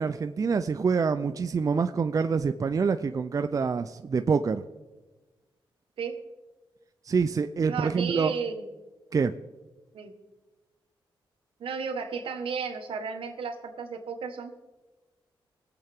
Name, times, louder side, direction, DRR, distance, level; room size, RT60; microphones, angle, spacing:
voice 1, 0.0-4.6 7.1-8.3 9.1-9.3, right 5 dB, 40° right, 10 dB, 0.4 m, -26 dB
voice 2, 7.7-8.7 9.9-10.1 11.6-14.5, right 5 dB, 80° right, 5 dB, 1.4 m, -33 dB
21.5 x 8.1 x 3.6 m, 1.2 s
cardioid pair, 85°, 9 cm